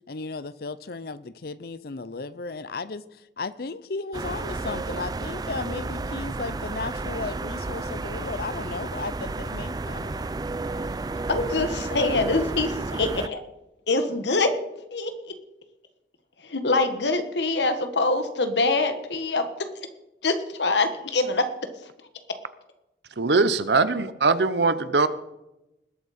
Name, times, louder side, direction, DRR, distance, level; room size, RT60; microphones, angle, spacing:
voice 1, 0.1-3.0 3.4-10.3, left 4 dB, 55° left, 16 dB, 0.6 m, -35 dB
sound 1, 4.1-13.3, right 3 dB, 20° right, 0.3 m, -32 dB
voice 2, 11.3-13.4 13.9-14.6 14.9-15.1 16.4-19.7 20.2-21.5, left 3 dB, 75° left, 8 dB, 1.4 m, -24 dB
voice 3, 23.2-25.1, right 3 dB, 70° right, 13 dB, 0.8 m, -21 dB
20.0 x 8.5 x 4.2 m, 0.91 s
head